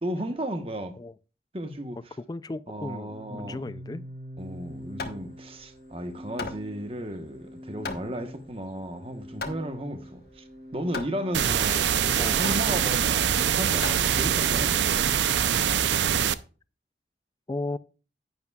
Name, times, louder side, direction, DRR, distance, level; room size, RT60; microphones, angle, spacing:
voice 1, 0.0-1.0 1.5-2.2 2.7-3.7 4.4-10.4 10.7-14.8, right 1 dB, 30° right, 1.1 m, -34 dB
voice 2, 2.3-4.0 12.2-12.4 17.5-17.8, left 2 dB, 20° left, 0.3 m, -35 dB
Organ, 3.0-13.8, equal, 55° right, 2.9 m, -45 dB
Hammer, 4.4-14.6, left 3 dB, 60° left, 1.1 m, -40 dB
sound 1, 11.3-16.3, right 9 dB, 80° right, 0.5 m, -24 dB
10.5 x 9.6 x 2.3 m
head